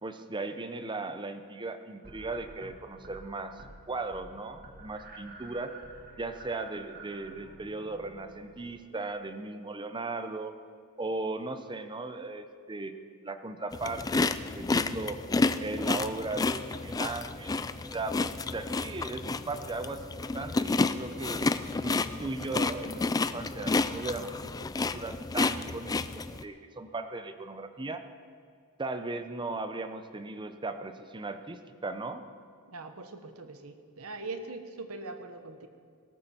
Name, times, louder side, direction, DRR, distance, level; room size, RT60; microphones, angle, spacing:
voice 1, 0.0-5.7 6.2-10.5 11.0-13.0 13.2-15.2 15.6-17.6 17.9-18.2 18.5-26.0 26.4-28.0 28.8-32.2, right 3 dB, 20° right, 9 dB, 0.7 m, -37 dB
sound 1, 2.0-3.2 3.5-3.8 4.1-8.9, right 3 dB, 45° right, 1.9 m, -50 dB
sound 2, 13.7-26.4, left 3 dB, 15° left, 0.3 m, -30 dB
voice 2, 32.7-35.7, right 3 dB, 70° right, 7 dB, 1.1 m, -41 dB
18.0 x 13.5 x 4.4 m, 2.1 s
head